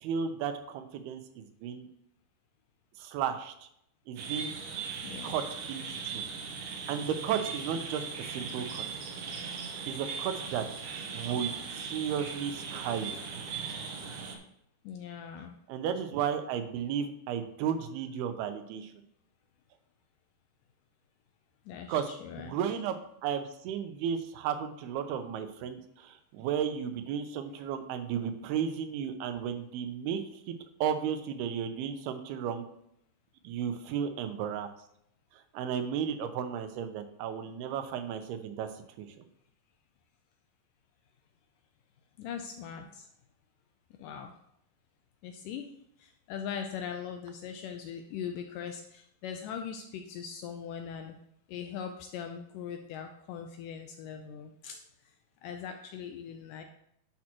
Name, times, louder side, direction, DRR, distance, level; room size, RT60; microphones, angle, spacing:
voice 1, 0.0-1.9 3.0-3.7 4.1-4.6 5.2-5.4 5.7-6.3 6.9-8.8 9.9-10.6 11.1-13.2 15.7-18.9 21.9-22.1 22.4-23.0 23.2-30.2 30.5-32.7 33.4-34.7 35.5-38.7 39.0-39.1, right 8 dB, 90° right, 8 dB, 2.8 m, -34 dB
sound 1, 4.2-14.4, right 5 dB, 65° right, 2.3 m, -39 dB
voice 2, 5.0-5.3 14.9-15.5 21.7-22.6 42.2-43.1 44.0-44.3 45.2-45.7 46.0-51.2 51.5-54.8 55.4-56.6, left 7 dB, 90° left, 5 dB, 1.9 m, -40 dB
10.5 x 7.5 x 3.0 m, 0.74 s
omnidirectional pair, 4.4 m